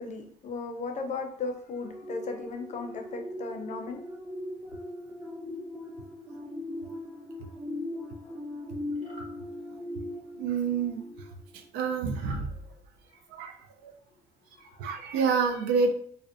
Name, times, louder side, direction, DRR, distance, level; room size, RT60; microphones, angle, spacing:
voice 1, 0.0-4.0 8.2-8.4 14.6-14.8, left 4 dB, 45° left, 4 dB, 0.5 m, -36 dB
sound 1, 1.8-11.7 12.1-12.4, left 1 dB, 15° right, 0.4 m, -39 dB
sound 2, 9.0-9.3 12.1-12.5, equal, 45° right, 0.9 m, -47 dB
voice 2, 10.3-11.0 11.5-12.5 13.3-13.6 13.8-13.9 14.8-15.9, right 5 dB, 90° right, 6 dB, 0.4 m, -28 dB
2.6 x 2.0 x 2.4 m, 0.63 s
cardioid pair, 110°, 17 cm